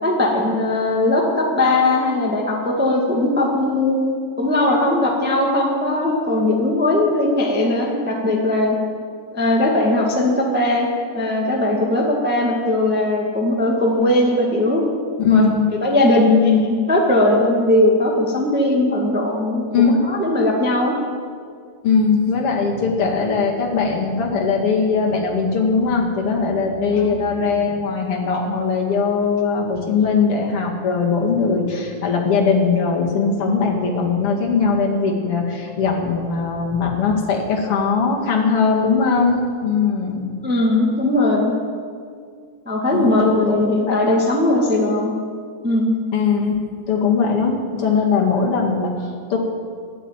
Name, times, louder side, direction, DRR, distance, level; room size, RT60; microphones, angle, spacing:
voice 1, 0.0-8.8 9.3-10.9 11.1-14.8 15.3-15.5 15.8-20.9 26.9-27.1 40.4-41.5 42.6-45.1 45.6-46.0, left 2 dB, 5° right, -1 dB, 1.1 m, -19 dB
voice 2, 15.2-15.7 19.7-20.0 21.8-40.3 42.9-44.2 46.1-46.6 46.9-47.5 47.8-49.4, left 5 dB, 45° left, -1 dB, 2.9 m, -20 dB
12.5 x 11.5 x 9.1 m, 2.1 s
omnidirectional pair, 3.8 m